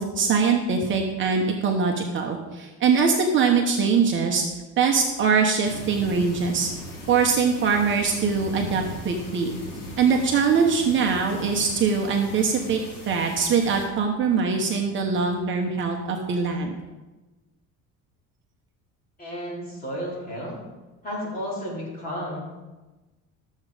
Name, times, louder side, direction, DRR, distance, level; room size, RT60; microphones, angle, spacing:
voice 1, 0.0-4.4 4.8-6.7 7.1-9.5 10.0-12.8 13.1-16.7, right 5 dB, 35° right, 2 dB, 1.0 m, -22 dB
sound 1, 5.6-13.9, left 1 dB, 90° left, 4.2 m, -39 dB
voice 2, 19.2-20.6 21.0-22.4, equal, 25° left, -6 dB, 4.1 m, -32 dB
13.0 x 7.4 x 4.9 m, 1.2 s
cardioid pair, 170°, 33 cm